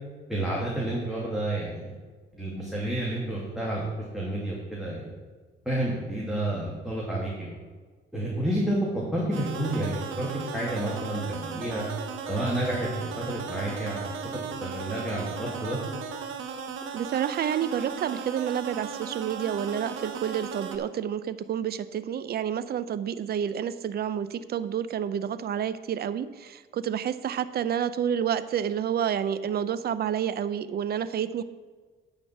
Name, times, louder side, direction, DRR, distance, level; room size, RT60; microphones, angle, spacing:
voice 1, 0.3-1.9 2.3-3.8 4.1-5.1 5.7-7.6 8.1-10.3 10.5-11.8 12.3-15.8, right 1 dB, ahead, -6 dB, 2.5 m, -30 dB
sound 1, 9.3-20.8, right 6 dB, 80° right, 1.1 m, -36 dB
voice 2, 16.9-31.4, right 9 dB, 55° right, 14 dB, 0.6 m, -29 dB
9.4 x 5.2 x 7.2 m, 1.4 s
cardioid pair, 90°, 20 cm